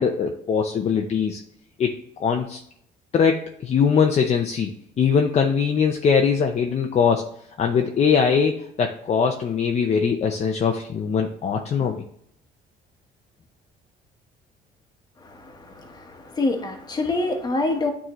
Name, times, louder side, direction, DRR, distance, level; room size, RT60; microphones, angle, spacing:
voice 1, 0.0-1.4 1.8-1.9 2.2-2.6 3.1-4.7 5.0-7.2 7.6-12.0, left 6 dB, 40° left, 4 dB, 0.6 m, -21 dB
voice 2, 15.2-17.9, left 2 dB, 25° left, 4 dB, 1.2 m, -26 dB
8.9 x 3.8 x 3.0 m, 0.68 s
cardioid pair, 110°, 17 cm